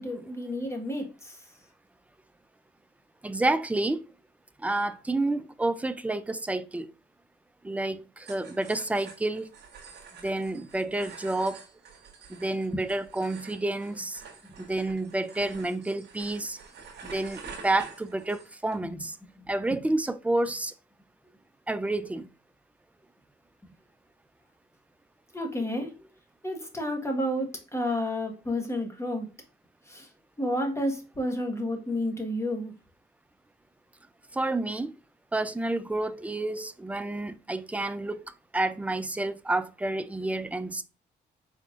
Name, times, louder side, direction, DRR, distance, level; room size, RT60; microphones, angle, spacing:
voice 1, 0.0-1.6 12.7-12.8 14.4-14.5 18.8-19.0 19.3-19.9 20.5-20.6 25.3-25.9 26.4-29.3 29.8-30.1 30.4-32.7, left 1 dB, 15° left, 1.3 m, -31 dB
voice 2, 3.2-4.0 4.6-6.9 7.6-9.5 10.2-11.6 12.3-14.2 14.6-16.6 17.1-19.2 19.5-20.7 21.7-22.3 34.3-34.9 35.3-38.2 38.5-40.8, right 2 dB, 10° right, 0.4 m, -29 dB
sound 1, 8.2-18.8, right 5 dB, 65° right, 1.1 m, -48 dB
4.3 x 3.5 x 2.5 m
cardioid pair, 80°, 19 cm